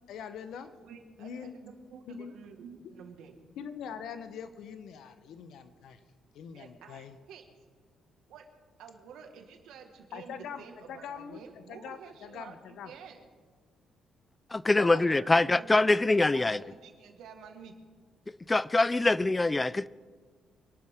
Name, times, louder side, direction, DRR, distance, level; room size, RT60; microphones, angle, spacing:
voice 1, 0.1-0.7 1.2-1.6 2.1-2.3 3.6-6.0 6.3-7.2 10.1-12.9 14.8-15.0, left 7 dB, 75° left, 1.0 m, -43 dB
voice 2, 0.8-3.4 6.5-7.4 8.3-8.5 8.8-13.3 14.9-16.0 16.3-17.7, right 6 dB, 85° right, 1.8 m, -50 dB
voice 3, 14.5-16.6 18.5-19.9, left 2 dB, 20° left, 0.4 m, -24 dB
24.5 x 11.5 x 3.7 m
cardioid pair, 90°, 0 cm